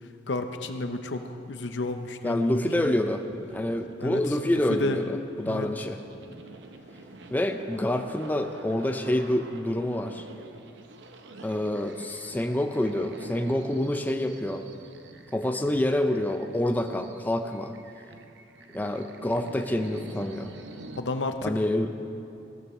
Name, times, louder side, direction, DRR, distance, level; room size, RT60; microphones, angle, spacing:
voice 1, 0.3-2.9 4.0-4.2 4.5-5.0 5.4-5.7 21.0-21.5, left 2 dB, 70° left, 7 dB, 0.8 m, -31 dB
voice 2, 2.2-3.2 3.5-6.0 7.3-10.2 11.4-14.7 15.3-17.7 18.7-20.5 21.4-21.9, left 1 dB, 10° left, 6 dB, 0.4 m, -27 dB
sound 1, 3.3-21.0, right 2 dB, 75° right, 0.8 m, -47 dB
16.0 x 13.5 x 3.2 m, 2.8 s
head